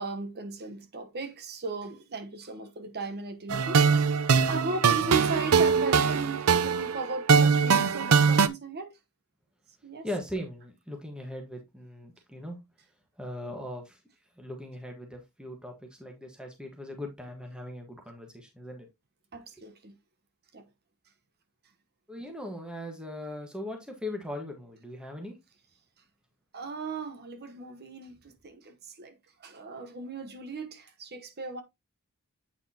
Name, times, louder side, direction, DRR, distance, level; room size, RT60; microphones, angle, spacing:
voice 1, 0.0-4.0 4.5-8.9 9.8-10.1 19.3-19.9 20.5-20.7 26.5-31.6, right 3 dB, 45° right, 1.1 m, -37 dB
sound 1, 3.5-8.5, right 5 dB, 70° right, 0.6 m, -22 dB
voice 2, 10.0-12.6 13.2-14.0 14.4-18.9 22.1-25.4, left 1 dB, 5° right, 1.4 m, -39 dB
8.4 x 5.1 x 2.9 m
head